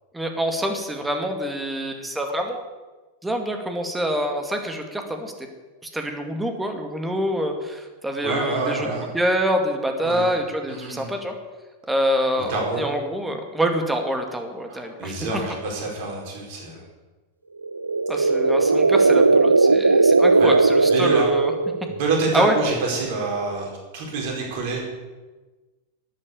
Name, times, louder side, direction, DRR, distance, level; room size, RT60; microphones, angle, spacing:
voice 1, 0.1-2.6 3.2-5.5 5.9-8.9 9.1-11.3 11.9-15.2 18.1-21.5 22.3-22.6, equal, 5° right, 4 dB, 2.4 m, -26 dB
voice 2, 8.2-9.1 10.0-10.4 10.7-11.1 12.5-12.9 14.7-16.8 20.4-20.5 20.9-21.3 21.8-24.8, right 3 dB, 50° right, -1 dB, 4.8 m, -27 dB
sound 1, 17.6-22.0, right 3 dB, 80° right, 0.4 m, -17 dB
12.0 x 9.9 x 8.5 m, 1.2 s
figure-of-eight pair, 90°, 0 cm